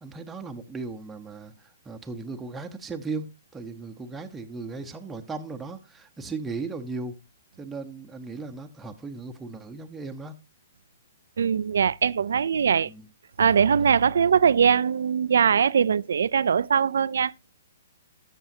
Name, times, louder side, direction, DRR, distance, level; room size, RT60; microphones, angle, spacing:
voice 1, 0.0-7.1 7.6-10.3 12.8-13.1, right 3 dB, 10° right, 0.8 m, -37 dB
voice 2, 11.4-12.9 13.4-17.3, right 7 dB, 75° right, 0.4 m, -21 dB
13.5 x 6.1 x 2.7 m
hypercardioid pair, 145°, 0 cm